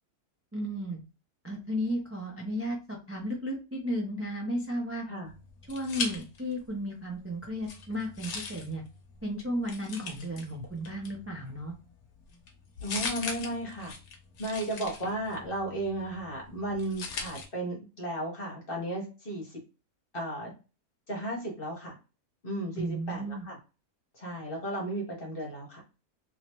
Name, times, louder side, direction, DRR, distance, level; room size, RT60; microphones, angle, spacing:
voice 1, 0.5-1.0 1.4-5.1 5.7-8.8 9.2-11.7 22.8-23.4, equal, 20° right, -1 dB, 0.3 m, -34 dB
sound 1, 5.2-6.7 7.1-17.5, left 4 dB, 80° left, 1.2 m, -41 dB
voice 2, 12.8-13.9 14.4-19.6 20.1-20.5 21.1-21.9 22.4-23.6 24.1-25.8, right 1 dB, 40° left, -1 dB, 1.4 m, -34 dB
3.1 x 3.0 x 3.0 m, 0.32 s
omnidirectional pair, 1.6 m